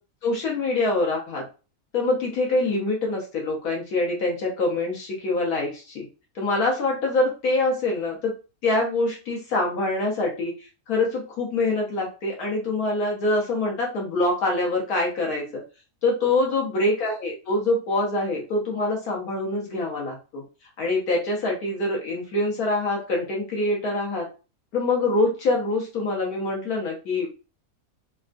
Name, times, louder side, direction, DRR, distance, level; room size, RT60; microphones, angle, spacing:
voice 1, 0.2-1.4 1.9-6.1 6.3-8.3 8.6-10.5 10.9-15.6 16.0-20.4 20.8-24.3 24.7-27.3, left 2 dB, 70° left, -1 dB, 1.2 m, -25 dB
3.4 x 2.2 x 2.4 m, 0.33 s
omnidirectional pair, 1.7 m